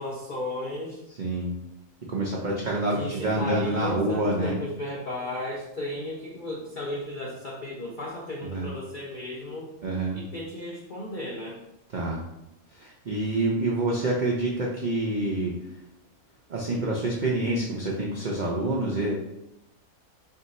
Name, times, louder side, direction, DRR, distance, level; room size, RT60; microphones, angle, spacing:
voice 1, 0.0-1.0 2.9-9.7 10.1-11.6, left 1 dB, 70° left, -2 dB, 0.4 m, -34 dB
voice 2, 1.2-1.5 2.1-4.6 8.4-8.7 9.8-10.2 11.9-12.2 12.7-15.5 16.5-19.1, right 2 dB, 70° right, -2 dB, 0.4 m, -27 dB
3.6 x 2.7 x 4.0 m, 0.87 s
omnidirectional pair, 1.5 m